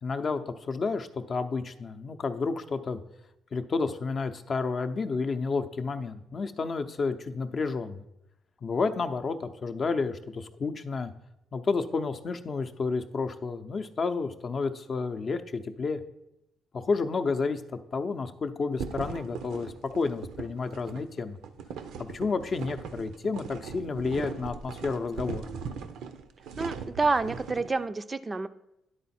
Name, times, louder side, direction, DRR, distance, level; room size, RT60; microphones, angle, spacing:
voice 1, 0.0-3.0 3.5-8.0 8.6-11.1 11.5-16.0 16.7-21.4 22.0-25.5, left 4 dB, 45° left, 9 dB, 0.5 m, -31 dB
sound 1, 18.8-27.7, right 6 dB, 90° right, 0.5 m, -40 dB
voice 2, 26.6-28.5, right 3 dB, 25° right, 11 dB, 0.3 m, -28 dB
10.0 x 3.9 x 4.2 m, 0.85 s
cardioid pair, 90°, 0 cm